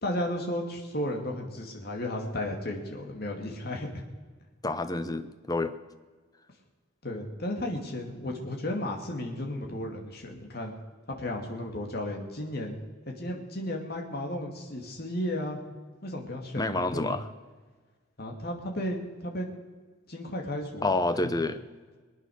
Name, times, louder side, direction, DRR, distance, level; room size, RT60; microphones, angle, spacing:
voice 1, 0.0-4.0 7.0-10.7 11.1-12.8 13.2-15.6 16.0-17.2 18.2-19.5 20.1-20.9 21.2-21.3, left 1 dB, 50° left, 1 dB, 2.5 m, -34 dB
voice 2, 4.6-5.8 16.6-17.3 20.8-21.6, left 2 dB, 20° left, 10 dB, 0.8 m, -28 dB
22.5 x 9.1 x 6.5 m, 1.4 s
head